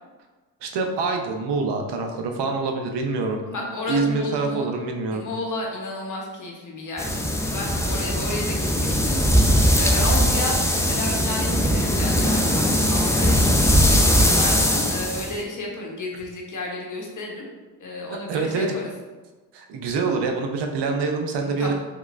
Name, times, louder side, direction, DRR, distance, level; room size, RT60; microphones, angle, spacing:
voice 1, 0.6-3.4 3.9-5.2 18.1-18.8 19.5-21.7, right 4 dB, 80° right, 3 dB, 0.6 m, -25 dB
voice 2, 3.4-4.7 5.1-17.5 17.8-18.9 20.5-20.6 21.6-21.7, left 2 dB, 45° left, -1 dB, 0.9 m, -32 dB
sound 1, 7.0-15.4, equal, 5° left, 0.4 m, -20 dB
3.6 x 3.0 x 2.4 m, 1.3 s
cardioid pair, 60°, 41 cm